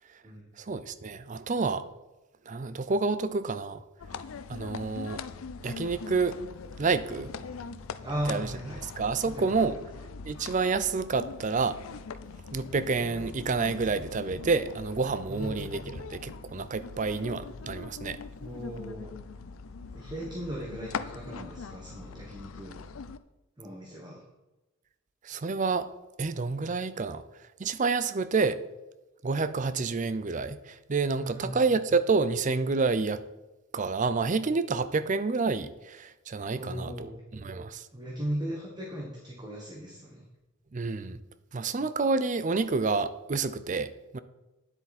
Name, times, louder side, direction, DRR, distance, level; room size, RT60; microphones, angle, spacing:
voice 1, 0.6-1.9 2.5-3.8 4.5-5.2 5.6-6.4 6.8-7.3 8.3-8.5 8.8-9.8 10.2-11.8 12.5-18.2 25.2-25.9 26.2-27.2 27.6-28.6 29.2-33.2 33.7-37.1 37.3-37.9 40.7-41.2 41.5-44.2, right 4 dB, 35° right, 13 dB, 0.5 m, -29 dB
sound 1, 4.0-23.2, left 5 dB, 85° left, 0.5 m, -42 dB
voice 2, 8.0-8.8 9.2-9.7 15.3-15.6 18.4-19.1 19.9-22.8 23.6-24.2 31.2-31.6 36.5-37.2 37.9-40.3, right 1 dB, 20° right, -1 dB, 1.4 m, -37 dB
10.0 x 8.0 x 4.2 m, 1.0 s
head